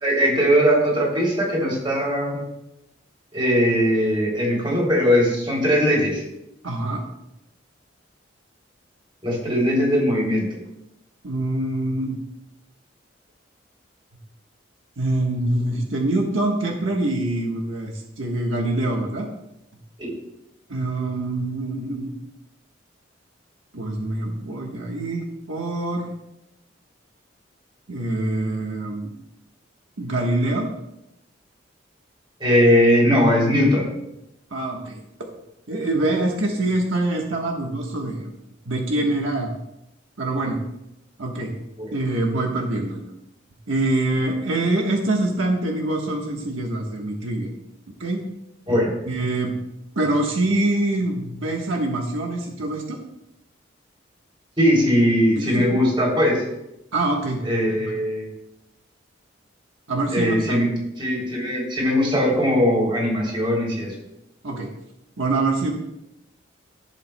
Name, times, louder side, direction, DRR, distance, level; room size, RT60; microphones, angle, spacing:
voice 1, 0.0-2.4 3.3-6.2 9.2-10.4 20.0-20.1 32.4-33.9 41.8-41.9 48.7-48.9 54.6-56.4 57.4-58.3 60.1-60.7 61.0-63.9, equal, 25° right, -2 dB, 3.3 m, -20 dB
voice 2, 6.6-7.0 11.2-12.2 15.0-19.3 20.7-22.1 23.7-26.1 27.9-29.1 30.0-30.7 34.5-35.0 35.7-38.3 38.6-39.5 40.2-40.6 41.2-41.5 41.9-43.1 43.7-47.5 48.0-48.2 49.1-49.6 49.9-53.0 55.3-55.7 56.9-57.4 57.8-57.9 59.9-60.6 64.4-64.7 65.2-65.7, right 2 dB, 90° right, 0 dB, 1.3 m, -24 dB
15.0 x 7.5 x 2.2 m, 0.87 s
head